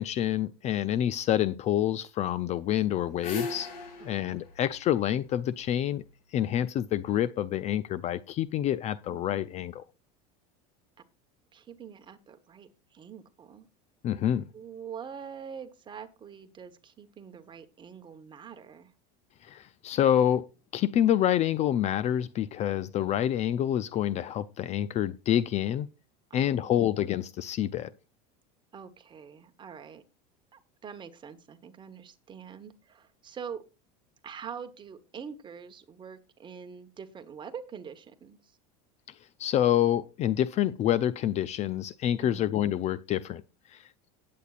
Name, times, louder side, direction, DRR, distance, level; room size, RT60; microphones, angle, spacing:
voice 1, 0.0-3.7 4.0-6.0 6.3-9.8 14.0-14.4 19.4-20.5 20.7-25.9 26.3-27.9 39.4-43.4 43.7-43.8, left 11 dB, 35° left, 0.4 m, -27 dB
sound 1, 2.7-5.9, left 2 dB, 75° left, 4.0 m, -39 dB
voice 2, 4.0-4.4 9.1-9.5 11.5-13.7 14.5-18.9 26.3-26.8 28.7-30.0 30.5-33.6 34.2-38.5 42.2-42.5, right 7 dB, 25° right, 1.3 m, -45 dB
17.5 x 8.5 x 2.5 m
supercardioid pair, 135°, 20 cm